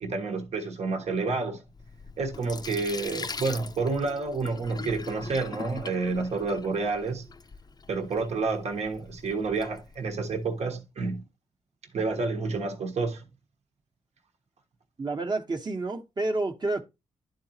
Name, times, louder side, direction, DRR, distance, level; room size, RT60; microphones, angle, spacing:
voice 1, 0.0-1.6 2.2-7.3 7.9-11.2 11.9-13.2, right 4 dB, 65° right, 1.2 m, -29 dB
Sink (filling or washing), 1.7-10.5, left 4 dB, 35° left, 0.6 m, -42 dB
voice 2, 15.0-16.8, right 2 dB, 35° right, 1.1 m, -29 dB
11.0 x 3.9 x 2.9 m
supercardioid pair, 55°, 12 cm